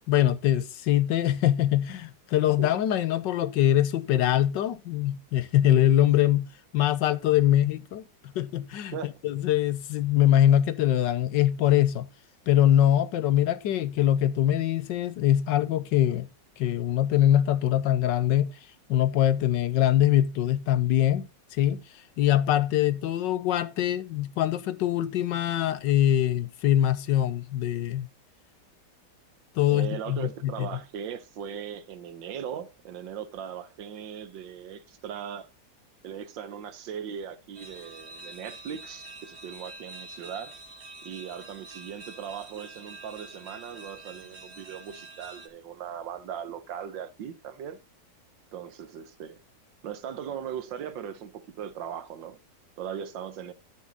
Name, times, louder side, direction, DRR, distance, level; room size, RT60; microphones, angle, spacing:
voice 1, 0.1-8.0 8.3-8.9 9.2-12.1 12.5-16.3 16.6-18.5 18.9-21.3 21.6-21.8 22.2-28.1 29.6-30.7, left 12 dB, 75° left, 1.4 m, -23 dB
voice 2, 29.7-35.5 36.0-40.6 41.0-47.8 48.5-49.4 49.8-52.4 52.8-53.5, right 8 dB, 80° right, 1.6 m, -39 dB
sound 1, 37.5-45.5, right 2 dB, 35° right, 1.8 m, -46 dB
12.0 x 6.2 x 4.0 m
omnidirectional pair, 2.0 m